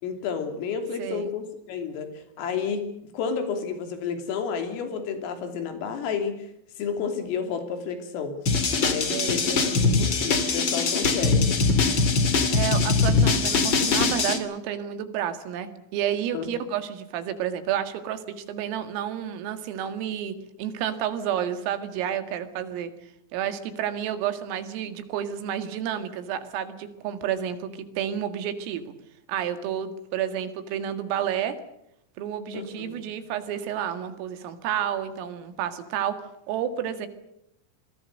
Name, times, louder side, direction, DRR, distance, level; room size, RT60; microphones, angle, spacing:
voice 1, 0.0-2.8 3.1-6.5 6.8-8.4 8.7-11.6 16.3-16.5 32.5-33.0, left 6 dB, 75° left, 6 dB, 5.5 m, -31 dB
voice 2, 1.0-1.3 9.1-9.7 12.5-22.9 23.3-28.9 29.3-31.6 32.2-36.2 36.5-37.1, right 9 dB, 80° right, 9 dB, 4.5 m, -30 dB
sound 1, 8.5-14.4, left 4 dB, 50° left, 1.4 m, -22 dB
26.5 x 22.0 x 6.6 m, 0.78 s
omnidirectional pair, 6.0 m